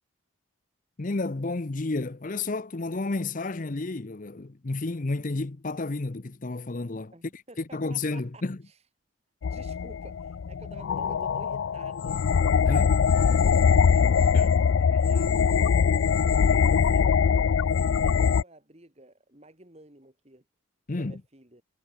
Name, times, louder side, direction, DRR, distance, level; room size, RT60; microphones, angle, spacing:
voice 1, 1.0-7.1 7.6-8.6 12.6-13.0 14.3-14.5 20.9-21.2, left 3 dB, 40° left, 0.7 m, -31 dB
voice 2, 7.1-8.8 9.5-12.3 13.1-15.5 16.4-17.2 17.7-20.4 21.0-21.6, right 2 dB, 30° right, 2.4 m, -51 dB
sound 1, 9.4-18.4, left 6 dB, 70° left, 0.4 m, -22 dB
head